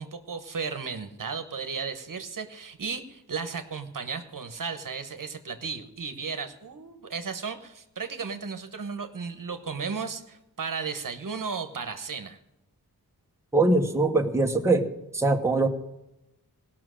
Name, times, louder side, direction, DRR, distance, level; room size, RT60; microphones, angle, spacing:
voice 1, 0.0-12.4, right 5 dB, 55° right, 8 dB, 1.1 m, -35 dB
voice 2, 13.5-14.9 15.1-15.7, right 2 dB, 5° right, 3 dB, 1.0 m, -22 dB
18.0 x 6.0 x 6.3 m, 0.92 s
wide cardioid pair, 110°, 38 cm